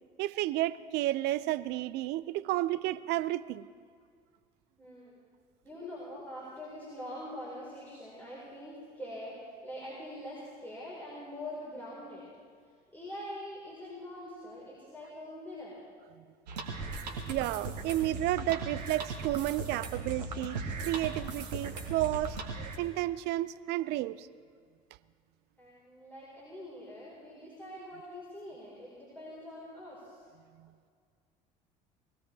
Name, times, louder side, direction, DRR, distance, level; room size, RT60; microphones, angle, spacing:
voice 1, 0.2-3.6 16.5-24.3, right 15 dB, 55° right, 18 dB, 0.5 m, -32 dB
voice 2, 4.8-5.1 5.6-12.3 12.9-15.8 25.6-30.2, left 1 dB, 10° left, -7 dB, 4.4 m, -44 dB
sound 1, 16.5-22.8, right 3 dB, 80° right, 1.6 m, -38 dB
20.5 x 16.0 x 3.4 m, 2.1 s
figure-of-eight pair, 60°, 21 cm